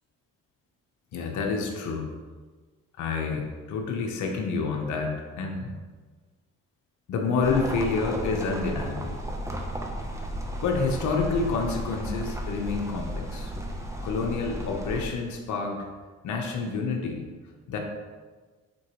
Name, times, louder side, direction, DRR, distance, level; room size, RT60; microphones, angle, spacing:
voice 1, 1.1-2.1 3.0-5.7 7.1-9.2 10.6-13.5 14.0-15.9 16.2-17.3 17.7-17.8, left 4 dB, 75° left, 2 dB, 0.9 m, -28 dB
sound 1, 7.4-15.1, right 1 dB, 10° right, 0.8 m, -34 dB
8.3 x 3.7 x 3.1 m, 1.4 s
cardioid pair, 90°, 30 cm